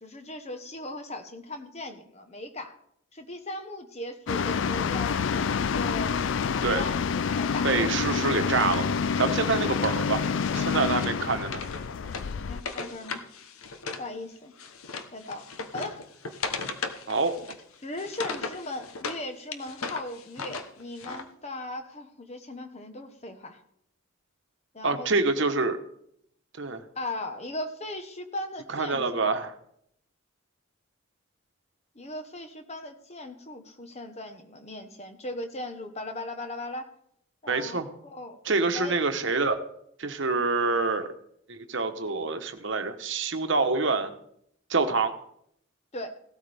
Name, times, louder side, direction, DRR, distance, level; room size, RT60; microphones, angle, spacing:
voice 1, 0.0-2.8 3.1-6.9 7.3-7.7 12.5-13.2 14.0-14.5 15.1-15.5 15.7-16.0 17.8-23.6 24.7-25.5 26.9-29.3 31.9-36.9 37.4-38.4 38.7-39.0 45.9-46.1, left 1 dB, 30° left, 7 dB, 1.1 m, -38 dB
sound 1, 4.3-12.6, left 6 dB, 60° left, 0.4 m, -28 dB
voice 2, 7.6-10.2 10.5-11.6 17.1-17.3 24.8-25.8 26.6-26.8 28.7-29.5 37.5-37.9 38.4-39.6 40.0-41.1 41.5-44.1 44.7-45.1, right 3 dB, 60° right, 8 dB, 1.1 m, -26 dB
Wood, 8.0-14.1 14.4-19.2 19.5-21.2, left 4 dB, 85° left, 1.1 m, -38 dB
16.5 x 13.0 x 3.5 m, 0.72 s
head